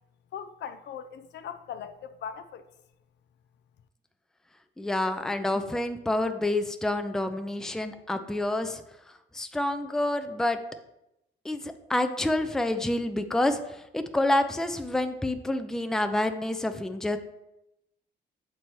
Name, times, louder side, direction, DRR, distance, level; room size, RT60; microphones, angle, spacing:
voice 1, 0.3-2.6, left 8 dB, 65° left, 0.4 m, -39 dB
voice 2, 4.8-8.8 9.3-10.6 11.4-17.2, left 1 dB, 5° left, 0.4 m, -28 dB
7.4 x 4.1 x 3.1 m
cardioid pair, 90°, 20 cm